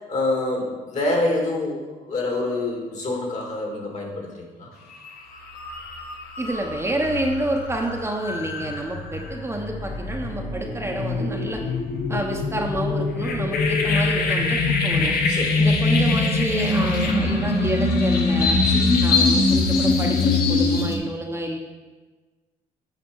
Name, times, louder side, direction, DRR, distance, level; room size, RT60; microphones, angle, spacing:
voice 1, 0.1-1.8 2.1-4.7 15.3-15.7 18.6-19.0, left 2 dB, 50° left, -1 dB, 2.6 m, -26 dB
sound 1, 4.9-5.1 5.5-21.0, left 3 dB, 90° left, 1.2 m, -23 dB
voice 2, 6.4-11.6 12.1-15.1 15.6-18.6 19.0-21.6, right 1 dB, 15° right, 1 dB, 1.0 m, -28 dB
9.1 x 4.2 x 6.4 m, 1.3 s
cardioid pair, 85°, 15 cm